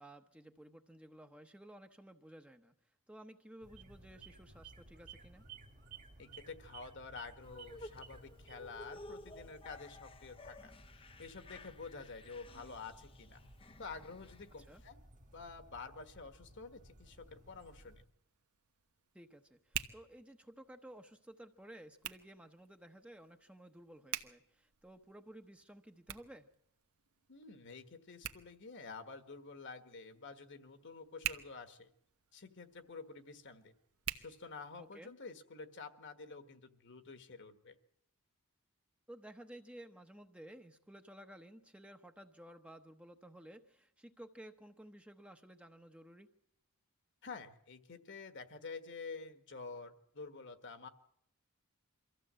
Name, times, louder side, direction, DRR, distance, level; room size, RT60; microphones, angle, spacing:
voice 1, 0.0-2.7 3.1-5.4 14.6-14.8 19.1-26.5 34.8-35.1 39.1-46.3, right 1 dB, 5° right, 5 dB, 0.9 m, -55 dB
sound 1, 3.6-18.1, right 3 dB, 35° right, 1.6 m, -58 dB
voice 2, 6.2-10.7 11.2-13.4 13.8-15.0 15.3-18.0 27.3-31.9 32.3-33.7 34.2-37.8 47.2-50.9, left 4 dB, 55° left, 9 dB, 1.6 m, -49 dB
sound 2, 7.4-14.8, left 1 dB, 25° left, 0.7 m, -54 dB
Hands, 17.5-35.1, right 10 dB, 80° right, 1.2 m, -49 dB
24.0 x 15.0 x 7.6 m, 0.75 s
head